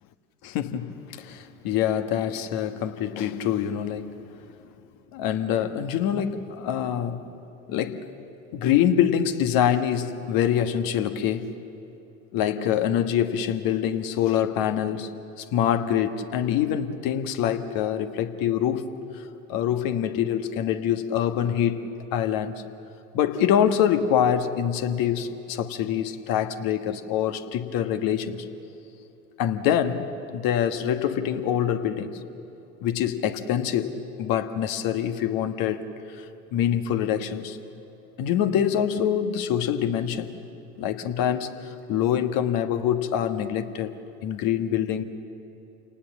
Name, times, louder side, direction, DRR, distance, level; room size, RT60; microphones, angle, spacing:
voice 1, 0.5-4.2 5.1-7.3 7.7-8.0 8.5-11.5 12.3-15.1 15.4-18.9 19.1-19.2 19.5-22.6 23.1-28.4 29.4-30.1 30.3-32.2 32.8-35.9 36.2-36.3 36.5-37.6 38.2-40.3 40.8-44.0 44.2-45.0, left 9 dB, 50° left, 9 dB, 1.5 m, -25 dB
28.5 x 19.0 x 7.4 m, 2.9 s
hypercardioid pair, 75°, 44 cm